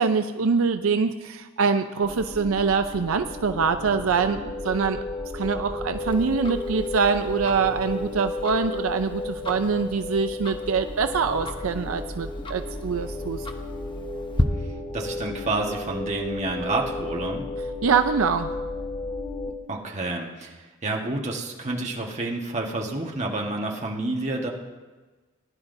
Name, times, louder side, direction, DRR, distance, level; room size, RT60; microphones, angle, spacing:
voice 1, 0.0-5.0 5.3-13.5 17.8-18.5, right 5 dB, 80° right, 8 dB, 0.5 m, -24 dB
sound 1, 2.0-19.5, left 2 dB, 40° left, 3.7 m, -33 dB
Tick-tock, 6.1-14.4, left 1 dB, 25° left, 0.8 m, -36 dB
voice 2, 14.9-17.5 19.7-24.5, right 2 dB, 35° right, 0 dB, 1.4 m, -29 dB
19.5 x 11.0 x 2.7 m, 1.3 s
head